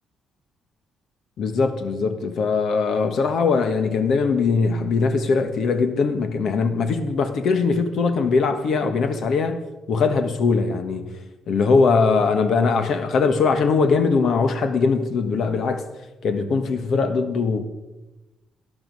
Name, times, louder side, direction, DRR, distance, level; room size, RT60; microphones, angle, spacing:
voice 1, 1.4-9.6 9.9-11.1 11.5-15.8 16.2-17.7, left 4 dB, 65° left, 1.3 m, -21 dB
12.5 x 11.5 x 5.4 m
cardioid pair, 90°, 0 cm